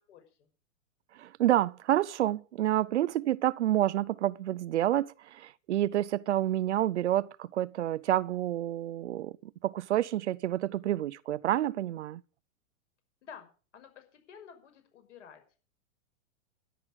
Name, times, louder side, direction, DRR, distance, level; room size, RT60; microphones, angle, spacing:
voice 1, 0.1-0.5 13.2-13.5 13.7-15.6, left 7 dB, 60° left, 6.0 m, -51 dB
voice 2, 1.1-9.4 9.6-12.2, right 13 dB, 55° right, 0.6 m, -29 dB
13.5 x 11.0 x 6.4 m
supercardioid pair, 180°, 41 cm